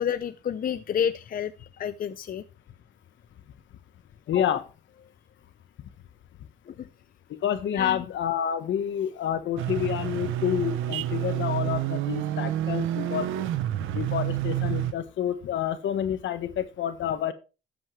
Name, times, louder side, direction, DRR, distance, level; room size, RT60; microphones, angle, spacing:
voice 1, 0.0-2.4 4.3-4.6 6.7-6.9 7.7-8.0, left 8 dB, 45° left, 12 dB, 0.6 m, -30 dB
voice 2, 4.3-4.7 7.4-13.3 13.9-17.3, left 10 dB, 70° left, 11 dB, 1.3 m, -28 dB
sound 1, 9.6-14.9, right 13 dB, 85° right, 0.8 m, -29 dB
13.5 x 7.7 x 3.2 m, 0.31 s
cardioid pair, 90°, 20 cm